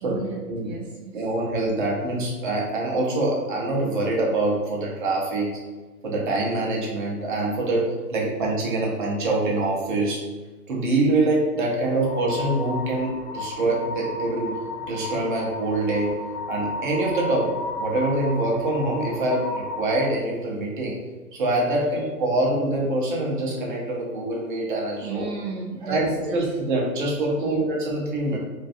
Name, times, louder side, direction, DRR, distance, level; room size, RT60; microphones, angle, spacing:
voice 1, 0.0-1.3 25.0-26.6 27.4-27.6, right 4 dB, 85° right, 0 dB, 0.6 m, -34 dB
voice 2, 1.1-5.6 6.0-10.2 10.7-14.6 14.8-16.2 16.5-21.0 21.3-25.3 25.8-28.4, right 2 dB, 35° right, -2 dB, 0.5 m, -25 dB
sound 1, 12.0-20.1, left 2 dB, 40° left, 0.5 m, -33 dB
2.4 x 2.2 x 2.5 m, 1.3 s
hypercardioid pair, 140°, 48 cm